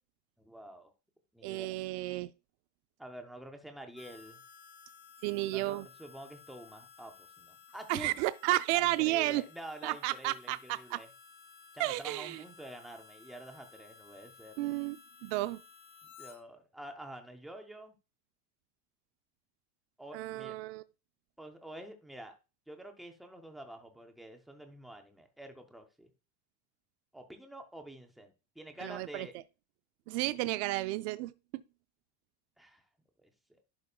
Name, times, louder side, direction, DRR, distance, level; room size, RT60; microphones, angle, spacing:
voice 1, 0.4-0.9 1.3-1.7 3.0-4.4 5.4-8.1 8.7-11.1 11.7-14.7 16.0-18.0 20.0-20.5 21.4-22.3 22.7-26.1 27.1-29.3 30.1-30.4 32.6-32.8 33.2-33.3, right 1 dB, ahead, 0.4 m, -48 dB
voice 2, 1.4-2.3 5.2-5.9 7.9-9.4 9.8-11.0 11.8-12.4 14.6-15.6 20.1-20.8 28.8-29.3 30.1-31.3, right 18 dB, 70° right, 0.5 m, -32 dB
Harmonica, 3.9-16.4, left 6 dB, 30° left, 1.0 m, -56 dB
11.0 x 5.1 x 2.3 m
cardioid pair, 180°, 35 cm